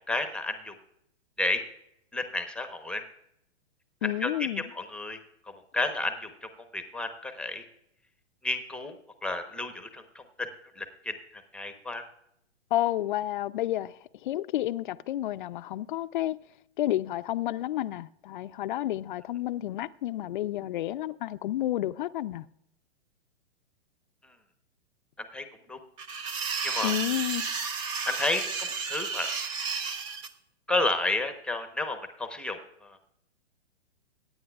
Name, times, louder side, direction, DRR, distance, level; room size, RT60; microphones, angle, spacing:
voice 1, 0.1-0.7 1.4-1.6 2.1-3.0 4.0-4.3 4.6-5.2 5.7-7.6 8.4-8.9 9.2-10.5 10.8-11.1 11.5-12.0 25.3-25.8 26.6-26.9 28.0-29.3 30.7-33.0, left 2 dB, 5° left, 0.9 m, -31 dB
voice 2, 4.0-4.7 12.7-16.4 16.8-22.5 26.8-27.5, left 13 dB, 45° left, 0.5 m, -30 dB
sound 1, 26.0-30.3, right 5 dB, 15° right, 0.3 m, -32 dB
23.0 x 9.5 x 2.4 m
hypercardioid pair, 120°, 34 cm